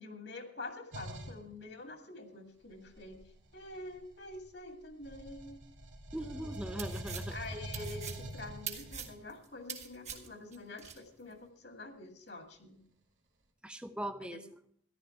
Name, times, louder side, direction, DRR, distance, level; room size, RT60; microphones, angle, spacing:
voice 1, 0.0-3.2 3.5-5.6 7.3-12.8 14.2-14.4, left 2 dB, 70° left, 4 dB, 2.1 m, -47 dB
sound 1, 0.9-1.4 2.7-4.6 5.0-9.2, right 1 dB, 85° right, 2.7 m, -44 dB
voice 2, 6.1-7.4 13.6-14.4, right 1 dB, 5° right, 9 dB, 0.5 m, -40 dB
sound 2, 6.5-11.0, right 7 dB, 35° right, 1.5 m, -44 dB
14.0 x 11.5 x 4.4 m, 0.62 s
head